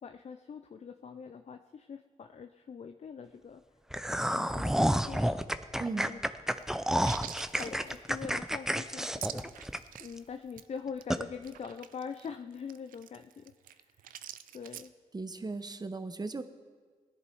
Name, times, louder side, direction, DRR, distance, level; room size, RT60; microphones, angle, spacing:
voice 1, 0.0-3.6 4.1-5.4 6.0-6.2 7.6-13.8 14.5-14.9, left 6 dB, 55° left, 8 dB, 0.6 m, -43 dB
sound 1, 3.9-10.2 10.6-10.7 11.1-11.2, equal, 5° right, 0.7 m, -30 dB
voice 2, 5.8-6.1 15.1-16.4, right 3 dB, 30° right, 10 dB, 1.0 m, -37 dB
sound 2, 6.5-10.2 10.5-10.7 11.0-11.1 11.3-14.9, right 11 dB, 85° right, 0.4 m, -46 dB
17.5 x 10.5 x 4.6 m, 1.5 s
supercardioid pair, 50°, 14 cm